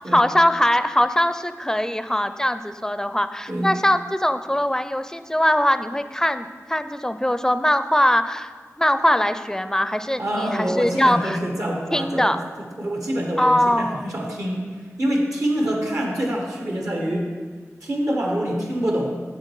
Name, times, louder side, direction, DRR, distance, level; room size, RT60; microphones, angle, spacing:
voice 1, 0.1-8.5 8.8-11.4 11.9-12.4 13.4-14.1, left 1 dB, 10° left, 10 dB, 0.4 m, -21 dB
voice 2, 10.2-12.4 12.8-14.6 15.0-17.3 17.8-19.2, equal, 75° right, 0 dB, 1.4 m, -25 dB
7.5 x 7.2 x 4.6 m, 1.5 s
wide cardioid pair, 45°, 6 cm